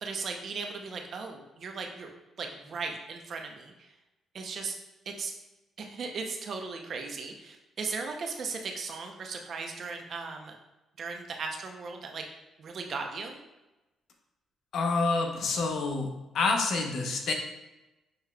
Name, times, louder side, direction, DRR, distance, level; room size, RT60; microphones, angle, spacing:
voice 1, 0.0-2.1 2.4-3.9 4.3-4.8 5.1-5.3 5.8-10.6 11.0-12.2 12.6-13.4, right 4 dB, 55° right, 3 dB, 0.6 m, -37 dB
voice 2, 14.7-16.1 16.3-17.3, left 3 dB, 70° left, 2 dB, 0.8 m, -27 dB
6.4 x 3.1 x 2.3 m, 1.0 s
cardioid pair, 90°, 0 cm